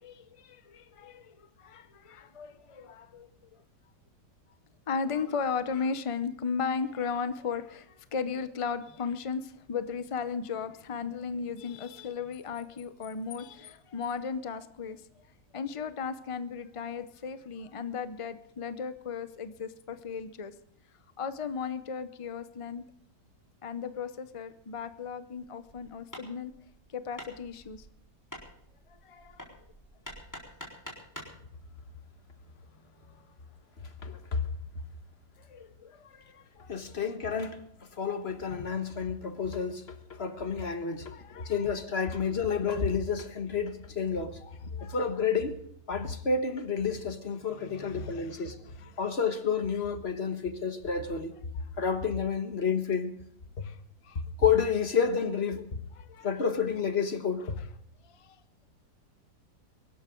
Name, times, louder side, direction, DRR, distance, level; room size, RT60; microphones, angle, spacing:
voice 1, 0.0-3.6 4.9-15.1 15.5-20.5 21.2-22.8 23.6-26.5 26.9-27.9 28.9-29.5 33.0-33.2 35.4-37.1 40.8-41.8 42.1-42.3 44.4-45.0 47.3-49.1 51.0-51.9 53.6-53.8 54.0-54.2 55.9-56.6 57.4-57.8 58.0-58.4, left 5 dB, 55° left, 0.3 m, -37 dB
Hammer, 25.6-31.4, equal, 10° left, 3.9 m, -47 dB
voice 2, 34.0-34.4 36.7-37.6 38.0-44.4 44.9-45.5 45.9-48.5 49.0-51.3 51.8-53.1 53.6-53.7 54.4-55.7 56.2-57.6, left 6 dB, 40° left, 1.5 m, -30 dB
23.0 x 12.5 x 3.8 m
omnidirectional pair, 1.8 m